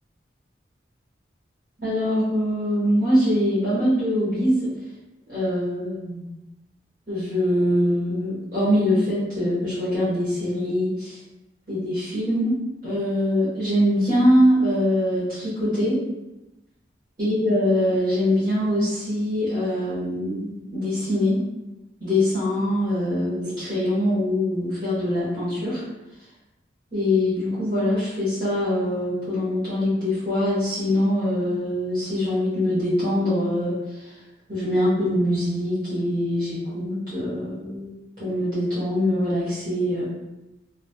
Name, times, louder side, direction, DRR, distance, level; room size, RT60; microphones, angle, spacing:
voice 1, 1.8-4.6 5.3-6.3 7.1-11.2 11.7-16.0 17.2-21.4 22.0-25.8 26.9-34.2 34.5-37.9 38.2-40.1, left 1 dB, 50° right, -12 dB, 1.2 m, -23 dB
3.0 x 2.7 x 2.2 m, 0.99 s
head